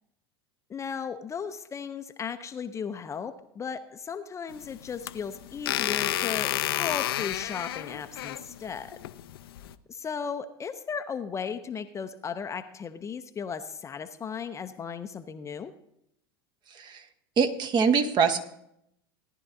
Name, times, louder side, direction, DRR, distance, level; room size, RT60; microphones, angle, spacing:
voice 1, 0.7-9.0 9.9-15.7, left 6 dB, 20° left, 9 dB, 0.6 m, -36 dB
sound 1, 4.5-9.7, left 13 dB, 70° left, 0.6 m, -31 dB
voice 2, 16.7-17.0 17.4-18.4, right 6 dB, 35° right, 8 dB, 1.2 m, -23 dB
17.5 x 11.0 x 2.7 m, 0.77 s
hypercardioid pair, 85°, 13 cm